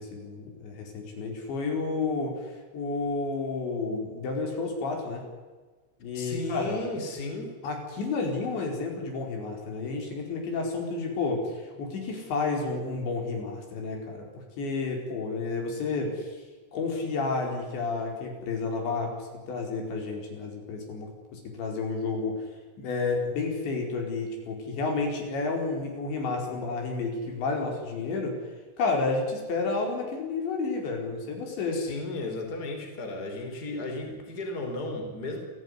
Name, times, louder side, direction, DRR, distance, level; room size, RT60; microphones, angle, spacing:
voice 1, 0.0-5.2 6.0-6.8 7.6-14.3 14.6-16.4 16.7-22.4 22.8-28.4 28.8-31.8, left 3 dB, 65° left, 1 dB, 6.8 m, -31 dB
voice 2, 6.1-7.5 31.7-35.4, left 2 dB, 20° left, 3 dB, 4.9 m, -34 dB
28.5 x 18.0 x 9.9 m, 1.4 s
omnidirectional pair, 5.6 m